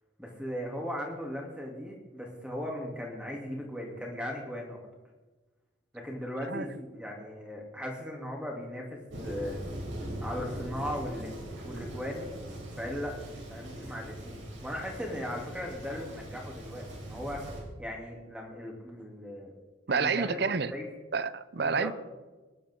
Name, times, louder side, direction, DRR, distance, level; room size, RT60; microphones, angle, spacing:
voice 1, 0.2-4.8 5.9-9.6 10.2-11.4 11.6-12.3 12.8-13.2 13.5-19.5 19.9-20.9 21.6-21.9, equal, 5° right, -1 dB, 3.1 m, -38 dB
Thunder, 9.1-17.6, right 1 dB, 80° right, 4.7 m, -41 dB
voice 2, 19.9-20.7 21.1-21.9, right 5 dB, 55° right, 15 dB, 0.7 m, -29 dB
22.5 x 11.5 x 3.9 m, 1.2 s
head